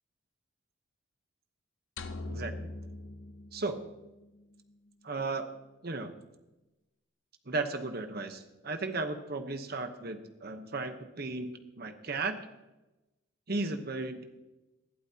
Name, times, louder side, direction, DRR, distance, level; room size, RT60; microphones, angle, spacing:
sound 1, 2.0-4.2, left 2 dB, 65° left, 0.8 m, -41 dB
voice 1, 2.3-2.7 3.5-3.8 5.0-5.5 5.8-6.1 7.5-12.4 13.5-14.2, right 3 dB, 50° right, 7 dB, 1.0 m, -35 dB
20.0 x 12.0 x 2.9 m, 1.0 s
head